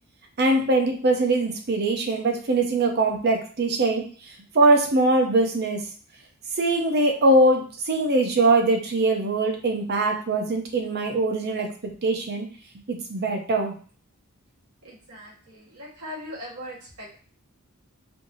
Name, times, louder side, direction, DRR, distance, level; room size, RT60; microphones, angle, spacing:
voice 1, 0.4-4.0 4.5-5.8 6.6-11.7 12.0-12.5 12.9-13.7, right 2 dB, 45° right, 3 dB, 0.7 m, -22 dB
voice 2, 14.8-17.2, equal, 85° right, -4 dB, 1.6 m, -40 dB
4.5 x 2.8 x 2.7 m, 0.41 s
head